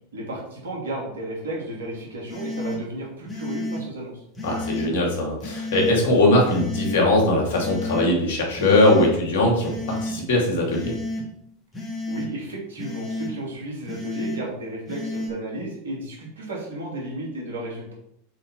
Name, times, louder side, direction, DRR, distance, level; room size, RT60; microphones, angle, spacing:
voice 1, 0.1-4.2 12.1-17.9, right 1 dB, 80° right, -3 dB, 2.8 m, -33 dB
sound 1, 2.3-2.8 3.3-3.8 4.4-4.9 5.4-5.9 6.4-7.0 7.5-8.1 8.6-9.1 9.6-10.1 10.7-11.2 11.7-12.3 12.8-13.3 13.9-14.4 14.9-15.3, left 1 dB, 20° left, 2.3 m, -31 dB
voice 2, 4.4-11.0, left 1 dB, 65° left, -1 dB, 2.6 m, -20 dB
7.3 x 4.3 x 4.3 m, 0.77 s
hypercardioid pair, 95°, 0 cm